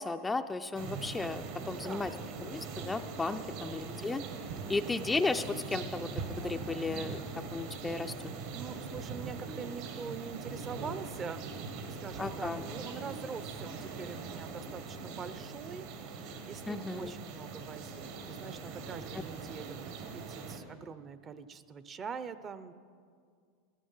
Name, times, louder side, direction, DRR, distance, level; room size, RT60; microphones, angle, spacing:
voice 1, 0.0-2.1 2.4-4.2 4.7-6.1 6.4-7.2 7.5-8.1 12.2-12.6 16.7-17.1, left 3 dB, 10° left, 7 dB, 0.5 m, -34 dB
sound 1, 0.7-20.6, right 4 dB, 65° right, 1.8 m, -42 dB
voice 2, 1.5-2.1 8.5-11.6 11.9-22.7, right 6 dB, 30° right, 13 dB, 0.7 m, -44 dB
13.5 x 12.5 x 5.6 m, 2.1 s
supercardioid pair, 120°, 0 cm